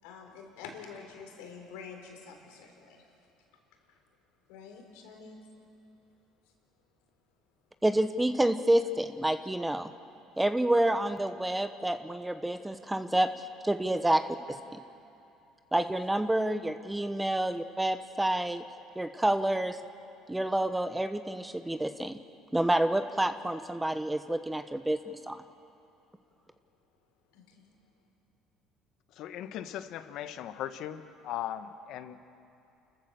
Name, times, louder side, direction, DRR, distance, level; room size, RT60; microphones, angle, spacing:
voice 1, 0.0-3.3 3.9-4.0 4.5-5.4 6.4-6.5 27.3-27.7, left 5 dB, 80° left, 2 dB, 3.9 m, -47 dB
voice 2, 7.8-9.9 10.4-14.2 14.7-14.8 15.7-18.6 19.0-19.8 20.3-22.2 22.5-25.4, right 1 dB, 10° right, 10 dB, 1.0 m, -28 dB
voice 3, 29.1-32.2, left 11 dB, 65° left, 11 dB, 1.1 m, -38 dB
30.0 x 14.5 x 6.9 m, 2.8 s
supercardioid pair, 75°, 0 cm